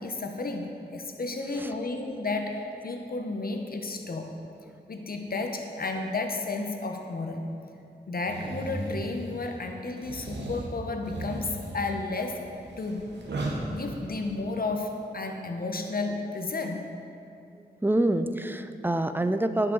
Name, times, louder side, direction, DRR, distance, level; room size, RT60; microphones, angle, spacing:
voice 1, 0.0-4.3 4.9-7.5 8.1-12.4 12.8-13.0 13.7-16.9, left 3 dB, 60° left, 4 dB, 0.9 m, -32 dB
sound 1, 8.3-9.5 10.0-14.3, right 2 dB, 85° right, 1.1 m, -36 dB
voice 2, 17.8-19.7, right 1 dB, 10° right, 10 dB, 0.4 m, -26 dB
11.0 x 5.9 x 4.0 m, 2.6 s
cardioid pair, 45°, 17 cm